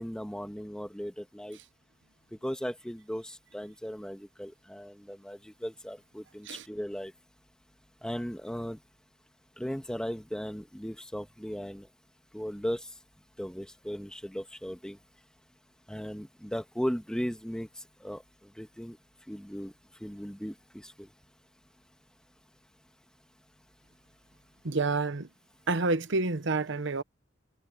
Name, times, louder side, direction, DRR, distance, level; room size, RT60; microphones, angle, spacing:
voice 1, 0.0-1.6 2.3-7.1 8.0-8.8 9.6-11.9 12.3-12.9 13.4-15.0 15.9-17.7 18.0-18.2 18.6-19.0 19.3-19.7 20.0-21.1, equal, 5° left, 1.6 m, -37 dB
voice 2, 24.6-25.3 25.7-27.0, right 3 dB, 65° right, 1.0 m, -28 dB
head